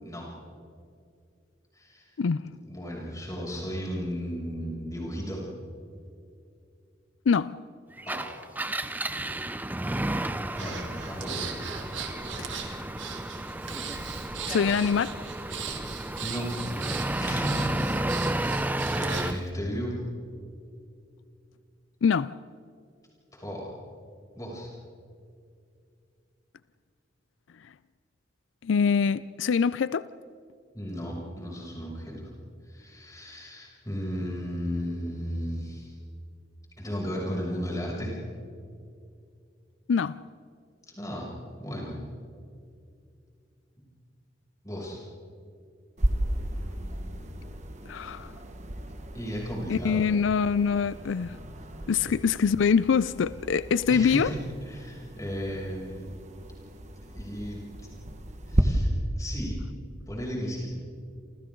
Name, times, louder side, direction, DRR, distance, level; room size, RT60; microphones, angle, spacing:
voice 1, 1.7-2.1 2.6-5.4 8.1-8.6 10.6-11.4 15.4-15.9 16.2-16.5 17.2-17.7 18.9-20.0 23.3-23.7 24.4-24.7 30.7-32.3 32.7-36.0 36.8-38.2 41.0-41.3 41.6-42.0 44.6-45.0 49.1-50.1 52.1-52.2 53.9-54.4 54.7-56.1 57.1-57.6 58.5-58.9 59.2-59.6 60.1-60.7, equal, 20° left, 6.9 m, -35 dB
voice 2, 7.3-7.6 12.4-12.5 14.5-15.1 22.0-22.4 28.6-30.1 39.9-40.2 47.9-48.3 49.7-51.4 51.9-54.3, left 6 dB, 85° left, 0.4 m, -24 dB
Engine, 8.0-19.4, right 1 dB, 10° right, 0.6 m, -32 dB
Breathing, 10.5-19.4, right 6 dB, 80° right, 3.0 m, -39 dB
sound 1, 46.0-58.6, right 1 dB, 40° right, 1.5 m, -34 dB
28.5 x 27.5 x 3.9 m
head